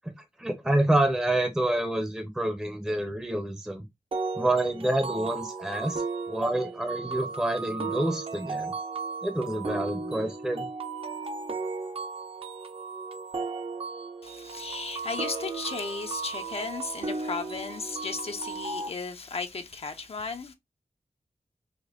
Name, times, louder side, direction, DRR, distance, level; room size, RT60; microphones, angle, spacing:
voice 1, 0.4-3.8 4.4-6.0 6.3-8.7 9.2-10.7, right 1 dB, 5° right, 0.6 m, -27 dB
sound 1, 4.1-18.9, right 4 dB, 55° right, 0.6 m, -35 dB
voice 2, 14.2-20.5, left 4 dB, 55° left, 0.5 m, -35 dB
5.0 x 2.1 x 2.3 m
wide cardioid pair, 75°, 12 cm